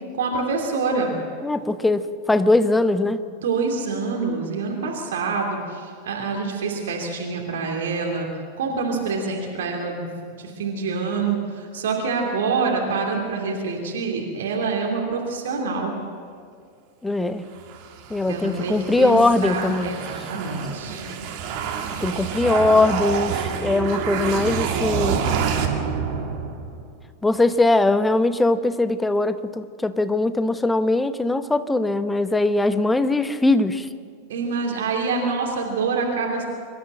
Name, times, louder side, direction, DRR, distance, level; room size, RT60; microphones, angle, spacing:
voice 1, 0.2-1.2 3.4-8.3 8.6-10.1 10.4-15.9 18.3-19.1 19.4-21.0 34.3-36.4, right 4 dB, 60° right, 0 dB, 2.9 m, -26 dB
voice 2, 1.4-3.2 17.0-17.5 18.1-20.0 20.3-20.4 22.0-25.3 27.2-33.9, left 2 dB, 10° left, 12 dB, 0.9 m, -21 dB
sound 1, 17.6-26.9, right 7 dB, 45° right, 2.4 m, -28 dB
25.0 x 13.5 x 7.7 m, 2.1 s
figure-of-eight pair, 90°, 0 cm